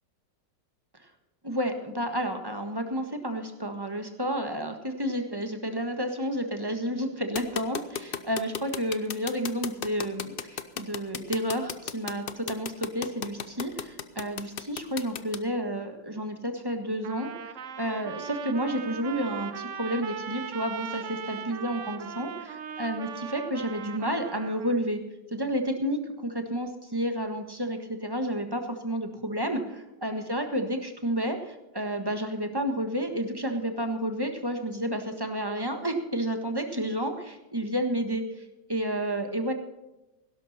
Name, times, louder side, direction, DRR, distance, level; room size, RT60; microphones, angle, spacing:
voice 1, 1.4-8.0 8.3-17.3 17.8-22.3 22.8-25.0 25.3-38.2 38.7-39.5, equal, 15° right, 5 dB, 1.4 m, -30 dB
sound 1, 7.4-15.4, left 7 dB, 70° left, 0.5 m, -34 dB
Trumpet, 17.0-24.8, right 8 dB, 55° right, 1.0 m, -39 dB
16.5 x 12.0 x 4.2 m, 0.97 s
omnidirectional pair, 2.0 m